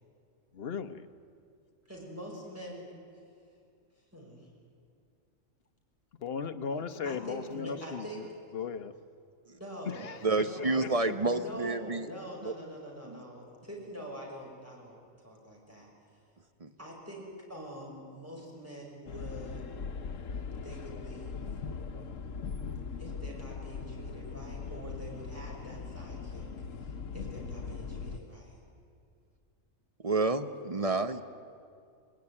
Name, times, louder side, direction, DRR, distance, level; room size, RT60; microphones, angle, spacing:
voice 1, 0.5-1.1 6.2-8.3 8.5-8.9 9.9-10.2 10.8-10.9, left 6 dB, 50° left, 9 dB, 1.1 m, -36 dB
voice 2, 1.9-2.9 4.1-4.5 7.0-8.2 9.5-10.9 11.2-15.0 15.2-15.9 16.8-19.7 20.5-21.5 23.0-26.5 26.8-28.6, equal, 10° right, -2 dB, 5.9 m, -45 dB
voice 3, 10.2-12.1 12.4-12.5 13.1-13.2 16.6-16.7 30.0-31.2, right 3 dB, 35° right, 9 dB, 0.7 m, -29 dB
sound 1, 19.1-28.2, left 5 dB, 75° left, 1.3 m, -40 dB
21.5 x 21.0 x 9.8 m, 2.3 s
omnidirectional pair, 1.4 m